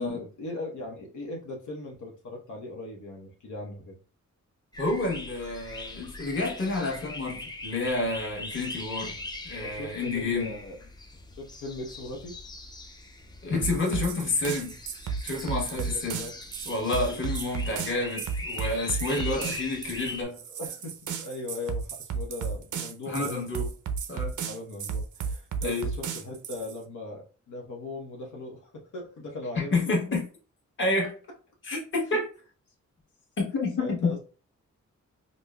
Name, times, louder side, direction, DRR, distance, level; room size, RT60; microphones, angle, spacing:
voice 1, 0.0-4.0 9.6-10.8 11.4-12.4 15.6-16.3 19.0-19.5 20.5-23.4 24.5-29.9 32.1-32.2 33.8-34.2, left 2 dB, 80° left, 0.9 m, -39 dB
sound 1, 4.7-20.2, left 2 dB, 15° left, 0.3 m, -41 dB
voice 2, 4.8-9.2 9.4-10.5 13.4-14.8 15.2-16.2 16.6-20.4 23.1-23.7 24.1-24.3 25.6-25.9 29.7-30.2 30.8-31.1 31.6-32.2 33.4-34.1, left 2 dB, 40° left, 1.2 m, -29 dB
sound 2, 13.6-26.8, right 6 dB, 80° right, 0.5 m, -33 dB
5.1 x 2.0 x 2.2 m
wide cardioid pair, 170°, 30 cm